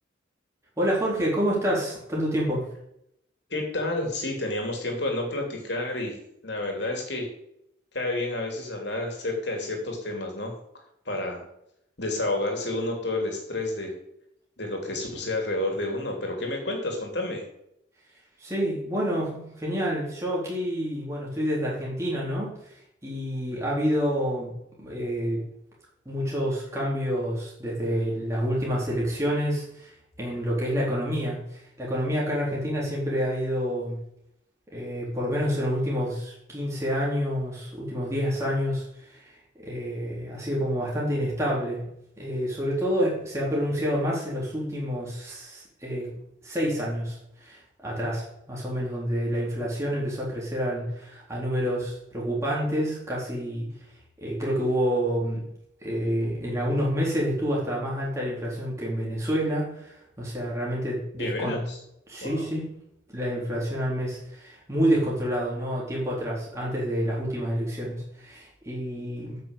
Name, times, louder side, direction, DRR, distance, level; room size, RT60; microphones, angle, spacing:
voice 1, 0.8-2.6 18.4-22.8 23.0-25.4 26.1-29.9 30.2-34.0 34.7-39.3 39.6-41.8 42.2-46.1 46.4-53.7 54.2-55.4 55.8-61.6 62.1-62.7 63.1-69.4, equal, 15° right, -5 dB, 3.8 m, -28 dB
voice 2, 3.5-6.2 6.4-7.3 7.9-10.5 11.0-11.4 12.0-13.9 14.6-17.4 61.2-61.8 62.2-62.4, left 2 dB, 60° left, 2 dB, 3.1 m, -30 dB
9.0 x 6.5 x 8.2 m, 0.78 s
head